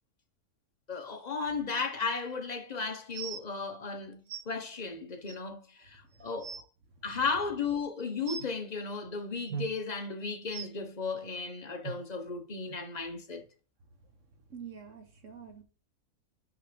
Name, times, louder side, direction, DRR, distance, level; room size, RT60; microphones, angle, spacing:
voice 1, 0.9-4.2 4.5-6.6 7.0-13.4, left 4 dB, 35° left, 0.9 m, -35 dB
sound 1, 3.1-3.4 4.3-4.4 5.3-5.4 5.9-6.0 6.3-6.6 8.3-8.5 9.5-9.7 10.5-10.7 11.8-11.9 12.7-12.8 13.5-13.6, right 6 dB, 80° right, 1.2 m, -38 dB
voice 2, 14.5-15.6, right 7 dB, 55° right, 1.3 m, -46 dB
5.8 x 5.5 x 3.2 m
omnidirectional pair, 1.6 m